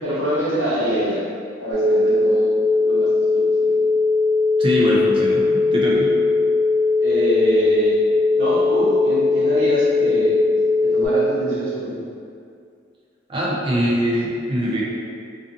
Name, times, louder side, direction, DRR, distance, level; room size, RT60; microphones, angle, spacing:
voice 1, 0.0-1.2 1.6-3.8 5.9-6.0 7.0-8.0 8.4-10.4 10.8-12.0, equal, 80° right, -10 dB, 1.0 m, -24 dB
sound 1, 1.7-11.1, left 3 dB, 25° left, 1.1 m, -19 dB
voice 2, 4.6-6.1 13.3-14.8, equal, 25° right, -5 dB, 0.4 m, -22 dB
2.4 x 2.4 x 2.5 m, 2.3 s
head